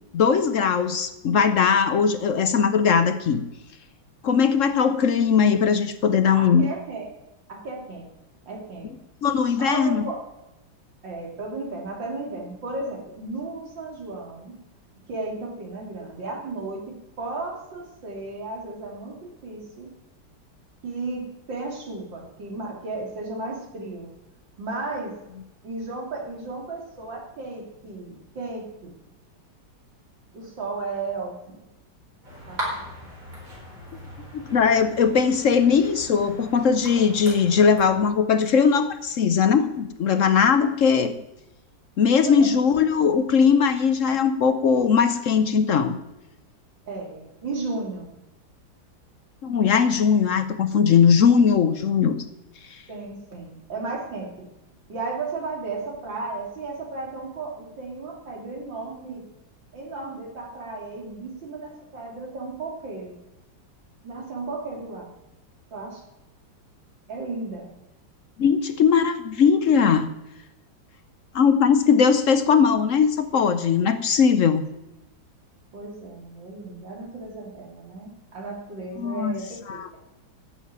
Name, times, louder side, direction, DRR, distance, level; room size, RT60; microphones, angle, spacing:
voice 1, 0.1-3.4 4.2-6.7 9.2-10.0 34.3-41.2 42.0-46.0 49.4-52.2 52.7-52.8 68.4-70.1 71.3-74.6 79.0-79.3 79.7-79.9, left 6 dB, 60° left, 11 dB, 0.8 m, -19 dB
voice 2, 6.3-7.1 7.5-8.1 8.5-8.9 9.5-10.2 11.0-14.6 15.1-19.9 20.8-24.1 24.6-25.2 25.6-28.9 30.3-31.6 32.5-32.9 42.2-42.5 46.9-48.1 52.9-54.3 54.9-59.3 59.7-63.2 64.0-65.1 65.7-66.0 67.1-67.7 75.7-80.0, right 3 dB, 75° right, -1 dB, 3.6 m, -34 dB
sound 1, 32.2-38.0, equal, 45° right, 5.0 m, -38 dB
11.5 x 7.5 x 9.5 m, 0.94 s
omnidirectional pair, 2.1 m